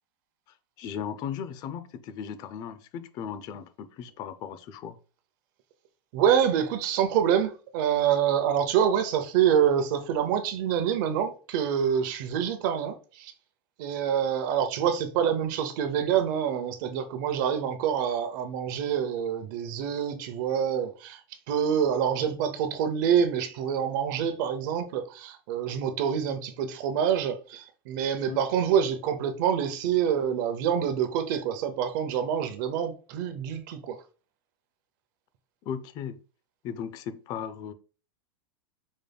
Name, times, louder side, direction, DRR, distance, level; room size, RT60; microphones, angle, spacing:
voice 1, 0.8-5.0 28.3-28.4 35.6-36.2 36.6-37.7, left 8 dB, 30° left, 0.4 m, -37 dB
voice 2, 6.1-13.3 13.8-21.2 21.5-34.0, right 8 dB, 50° right, 0.7 m, -26 dB
5.2 x 3.4 x 2.2 m
supercardioid pair, 150°, 13 cm